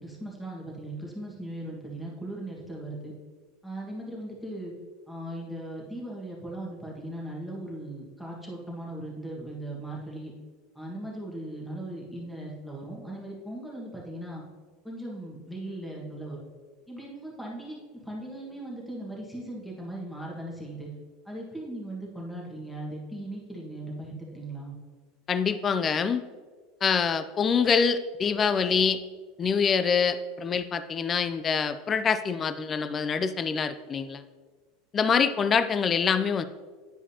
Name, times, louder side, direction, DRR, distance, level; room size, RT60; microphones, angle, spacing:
voice 1, 0.0-3.1 3.6-4.7 5.1-10.3 10.7-14.4 14.8-16.4 16.9-20.9 21.2-24.8, right 1 dB, 5° left, -3 dB, 1.6 m, -38 dB
voice 2, 25.3-26.2 26.8-29.0 29.4-34.2 34.9-36.5, left 6 dB, 25° left, 11 dB, 0.3 m, -25 dB
10.0 x 4.8 x 2.8 m, 1.4 s
supercardioid pair, 120°, 0 cm